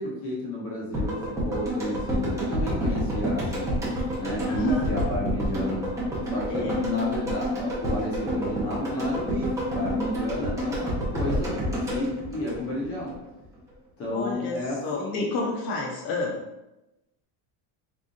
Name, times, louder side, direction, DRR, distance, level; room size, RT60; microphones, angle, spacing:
voice 1, 0.0-3.8 4.2-5.9 6.3-13.1 14.0-15.2, left 1 dB, 30° left, -3 dB, 0.9 m, -31 dB
sound 1, 0.9-13.1 13.4-13.5, equal, 5° right, 0.5 m, -29 dB
voice 2, 4.5-4.8 6.5-6.8 14.1-14.6 14.8-16.4, left 3 dB, 50° left, -1 dB, 1.1 m, -30 dB
3.8 x 3.5 x 2.5 m, 0.94 s
cardioid pair, 175°, 49 cm